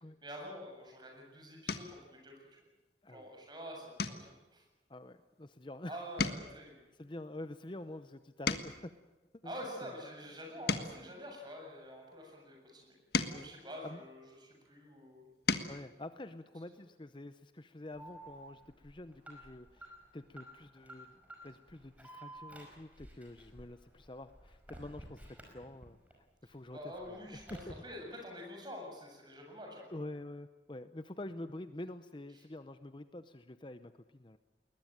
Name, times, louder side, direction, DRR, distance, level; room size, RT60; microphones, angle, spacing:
voice 1, 0.2-2.6 3.1-4.6 5.8-6.8 9.4-15.2 26.4-29.8, equal, 25° right, 1 dB, 7.5 m, -47 dB
sound 1, 0.8-1.1 1.6-2.1 2.6-2.9 3.2-3.4 3.9-5.8 6.0-9.0 9.6-12.1 12.7-14.6 15.1-15.8 17.2-17.3 17.6-17.8, left 4 dB, 60° left, 1.6 m, -39 dB
voice 2, 4.9-6.0 7.0-9.1 9.4-9.5 9.8-10.0 13.3-13.5 13.8-14.0 15.7-27.2 27.5-27.7 28.1-28.3 29.9-34.4, left 1 dB, 25° left, 11 dB, 0.7 m, -47 dB
Alarm, 17.9-26.1 26.5-27.7, right 1 dB, 10° right, 5.2 m, -53 dB
21.0 x 21.0 x 9.1 m, 1.1 s
head